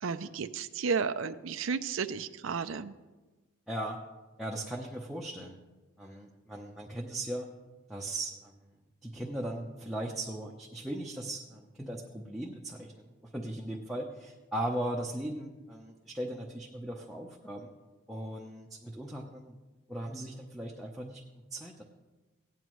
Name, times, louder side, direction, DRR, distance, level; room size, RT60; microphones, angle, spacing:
voice 1, 0.0-2.9, right 5 dB, 75° right, 9 dB, 0.5 m, -33 dB
voice 2, 3.7-4.0 4.4-5.6 6.0-7.5 7.9-8.7 9.0-17.7 18.1-19.6 19.9-21.2 21.5-21.8, right 1 dB, ahead, -3 dB, 0.8 m, -38 dB
17.0 x 10.5 x 3.1 m, 1.2 s
head